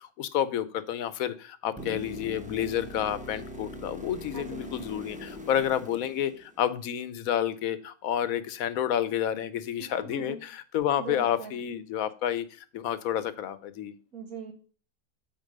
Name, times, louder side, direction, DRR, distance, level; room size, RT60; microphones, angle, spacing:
voice 1, 0.0-13.9, left 10 dB, 80° left, 14 dB, 1.1 m, -30 dB
sound 1, 1.8-6.8 10.8-10.9, equal, 5° right, 1.0 m, -42 dB
voice 2, 4.3-4.7 9.8-10.4 11.0-11.7 14.1-14.5, right 4 dB, 80° right, 2 dB, 2.4 m, -40 dB
8.2 x 4.4 x 5.3 m, 0.38 s
omnidirectional pair, 1.5 m